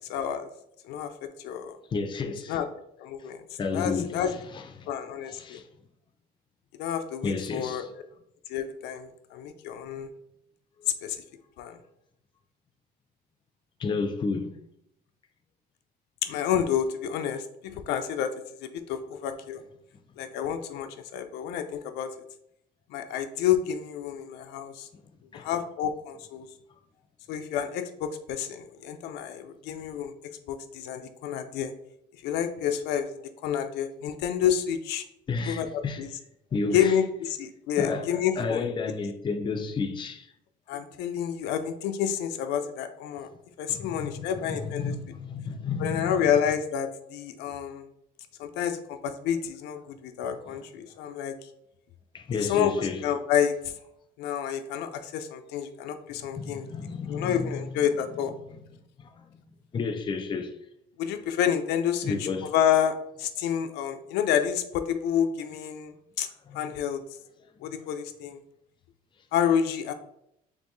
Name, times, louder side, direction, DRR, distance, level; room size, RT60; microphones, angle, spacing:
voice 1, 0.1-0.5 0.8-1.7 2.5-2.7 3.0-3.4 3.7-4.3 4.9-5.6 6.8-7.8 8.5-10.1 11.0-11.2 11.6-11.8 16.2-18.3 18.6-19.6 20.2-22.1 22.9-24.9 25.3-26.5 27.3-30.1 30.5-31.7 32.2-35.0 35.5-36.1 36.7-38.6 40.7-43.3 43.6-44.9 45.8-47.9 48.4-51.4 52.4-53.5 54.2-56.7 57.1-58.3 61.0-66.3 66.5-67.0 67.6-68.4 69.3-69.9, left 9 dB, 90° left, 0.4 m, -29 dB
voice 2, 1.9-2.6 3.6-4.2 4.5-4.9 5.3-5.6 7.2-7.9 13.8-14.6 25.3-25.5 35.3-36.0 36.5-36.9 37.8-40.3 43.7-46.3 52.1-53.0 56.2-57.6 58.1-58.2 59.0-59.4 59.7-60.6 62.0-62.5 66.5-66.7 67.6-67.8, left 4 dB, 30° left, 0.4 m, -31 dB
4.3 x 3.0 x 3.0 m
cardioid pair, 110°, 17 cm